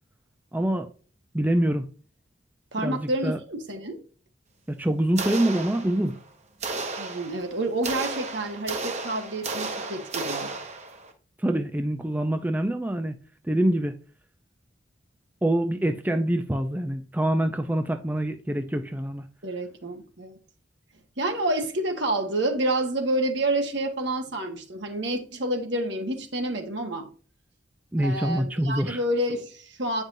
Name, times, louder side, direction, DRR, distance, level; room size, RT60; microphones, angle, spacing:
voice 1, 0.5-0.9 1.3-1.9 2.8-3.4 4.7-6.2 11.4-13.2 13.4-13.9 15.4-19.2 27.9-29.0, right 1 dB, 10° right, 0.4 m, -25 dB
voice 2, 2.7-4.0 7.0-10.5 19.4-20.3 21.2-27.1 28.0-30.0, right 1 dB, 70° right, 1.4 m, -28 dB
sound 1, 5.2-6.2 6.6-11.1, right 3 dB, 35° right, 1.0 m, -33 dB
8.6 x 5.2 x 2.6 m
head